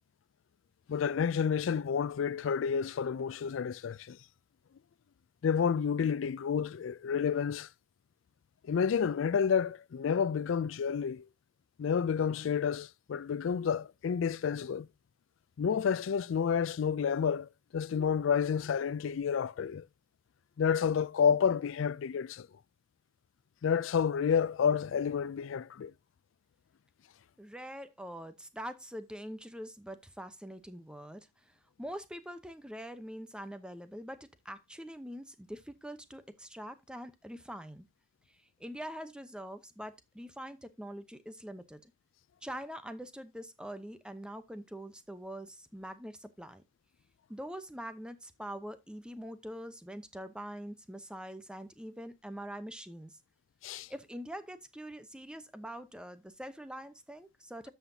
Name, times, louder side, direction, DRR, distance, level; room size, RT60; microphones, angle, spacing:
voice 1, 0.9-4.2 5.4-7.7 8.7-11.3 11.8-14.9 15.6-19.8 20.6-22.5 23.6-25.9 53.6-53.9, left 7 dB, 80° left, 0.4 m, -30 dB
voice 2, 27.4-37.9 38.6-41.9 42.4-46.6 47.3-53.1 53.9-57.7, equal, 5° right, 0.8 m, -44 dB
13.0 x 5.7 x 2.7 m
head